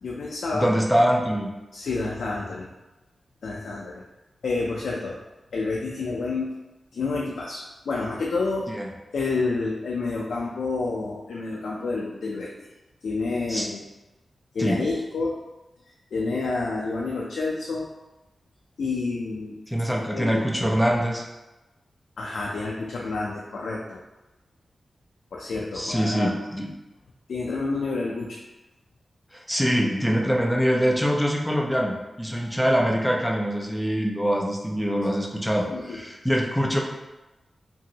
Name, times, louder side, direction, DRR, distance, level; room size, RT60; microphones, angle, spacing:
voice 1, 0.0-0.7 1.7-2.7 3.4-4.0 4.4-5.2 5.5-6.6 6.9-8.7 9.1-12.7 13.0-13.8 14.5-15.4 16.1-17.9 18.8-19.6 20.1-20.4 22.2-24.0 25.3-26.3 27.3-28.4 35.7-36.0, left 3 dB, 80° left, -3 dB, 0.3 m, -29 dB
voice 2, 0.5-1.5 8.7-8.9 13.5-13.7 14.6-14.8 19.7-21.2 25.7-26.7 29.3-36.8, equal, ahead, 0 dB, 0.3 m, -24 dB
2.9 x 2.6 x 2.7 m, 1.0 s
wide cardioid pair, 180°, 0 cm